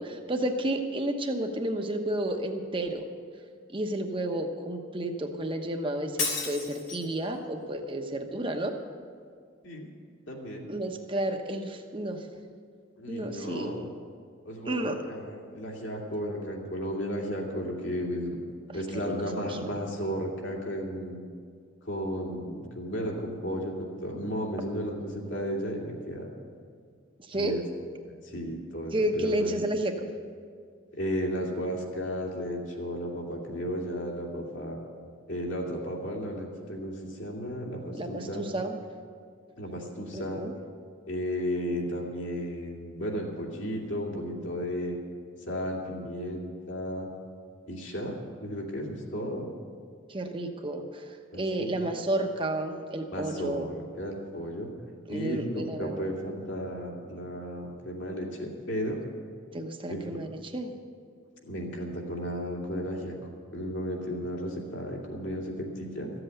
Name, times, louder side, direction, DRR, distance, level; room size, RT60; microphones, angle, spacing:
voice 1, 0.0-3.0 3.7-8.7 10.7-12.2 13.1-13.9 14.7-15.0 18.7-18.8 19.0-19.7 27.3-27.6 28.9-29.9 37.9-38.8 40.1-40.5 50.1-53.7 55.1-56.1 59.5-60.3 60.5-60.7, right 1 dB, 25° right, 4 dB, 1.0 m, -31 dB
Shatter, 6.2-7.2, left 4 dB, 85° left, 3.8 m, -32 dB
voice 2, 10.3-10.7 13.0-13.9 14.4-18.4 18.7-21.2 21.8-26.3 27.3-27.6 28.2-29.6 30.9-34.8 35.3-38.4 39.6-40.4 41.1-45.0 45.5-47.1 47.7-49.5 51.3-51.8 53.1-54.7 55.1-59.0 59.9-60.2 61.4-63.1 63.5-66.1, equal, 65° left, -1 dB, 2.6 m, -34 dB
15.0 x 7.9 x 9.0 m, 2.1 s
head